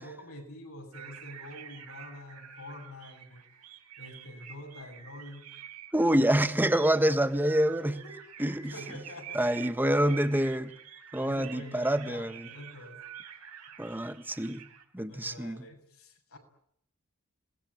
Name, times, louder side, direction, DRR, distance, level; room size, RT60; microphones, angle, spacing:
voice 1, 0.0-3.4 4.0-5.6 7.8-8.2 8.6-9.4 11.2-13.0 15.1-16.4, left 1 dB, 70° left, 3 dB, 7.4 m, -46 dB
sound 1, 0.9-14.8, right 9 dB, 85° right, 5.6 m, -48 dB
voice 2, 5.9-8.0 8.4-8.7 9.3-10.7 11.1-12.5 13.8-14.6 14.9-15.6, right 1 dB, 10° right, 11 dB, 1.4 m, -26 dB
28.0 x 20.5 x 9.8 m, 0.72 s
head